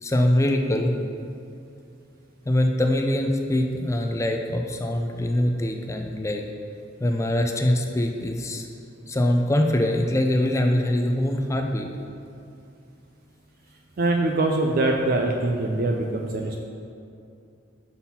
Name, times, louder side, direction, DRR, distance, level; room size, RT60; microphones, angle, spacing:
voice 1, 0.0-1.0 2.5-6.4 7.0-8.7 9.1-11.9, left 1 dB, 15° left, 4 dB, 0.4 m, -23 dB
voice 2, 14.0-16.6, right 2 dB, 50° right, 2 dB, 0.4 m, -23 dB
5.8 x 4.1 x 5.6 m, 2.6 s
head